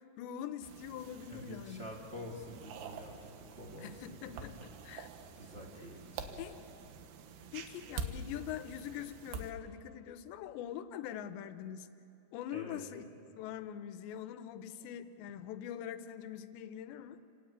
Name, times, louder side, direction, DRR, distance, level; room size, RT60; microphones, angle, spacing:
voice 1, 0.0-1.9 3.8-5.1 6.4-6.5 7.5-11.9 12.3-13.0 13.4-17.2, left 10 dB, 80° left, 11 dB, 3.0 m, -43 dB
sound 1, 0.6-9.5, right 4 dB, 70° right, 3.1 m, -47 dB
voice 2, 1.3-4.5 5.3-6.5 12.5-13.1 14.8-14.9, left 1 dB, 20° right, -2 dB, 1.9 m, -48 dB
29.5 x 18.0 x 8.8 m, 2.8 s
omnidirectional pair, 5.3 m